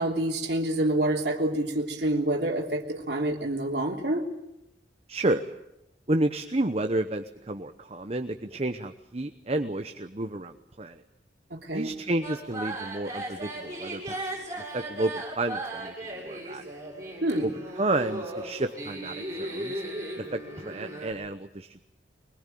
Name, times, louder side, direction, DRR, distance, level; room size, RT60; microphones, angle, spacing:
voice 1, 0.0-4.2 11.5-11.9 17.2-17.5, right 1 dB, 65° right, 0 dB, 3.2 m, -27 dB
voice 2, 5.1-5.5 6.1-11.0 11.7-14.4 14.7-16.6 17.4-17.5 17.8-19.8 20.2-21.8, right 2 dB, 35° right, 8 dB, 0.9 m, -31 dB
sound 1, 12.2-21.1, right 1 dB, 15° right, 6.6 m, -37 dB
24.0 x 21.0 x 9.2 m, 0.89 s
head